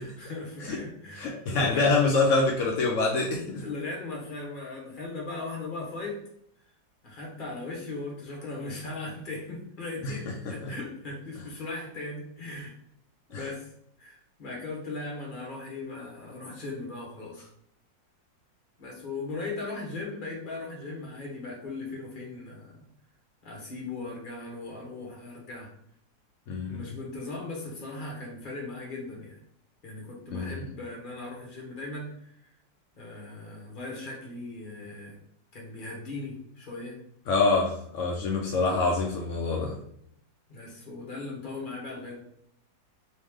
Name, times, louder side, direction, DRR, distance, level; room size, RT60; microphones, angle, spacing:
voice 1, 0.0-2.2 3.6-6.2 7.0-12.7 13.3-13.7 14.0-17.5 18.8-22.9 23.4-25.7 26.7-29.4 29.8-32.5 33.0-35.2 35.5-37.0 40.5-42.2, left 3 dB, 35° left, -2 dB, 1.0 m, -38 dB
voice 2, 1.2-3.6 10.0-10.1 10.5-10.7 13.3-13.4 26.5-26.9 30.3-30.5 37.3-39.7, left 3 dB, 80° left, -1 dB, 0.7 m, -26 dB
3.1 x 3.1 x 3.5 m, 0.71 s
omnidirectional pair, 2.0 m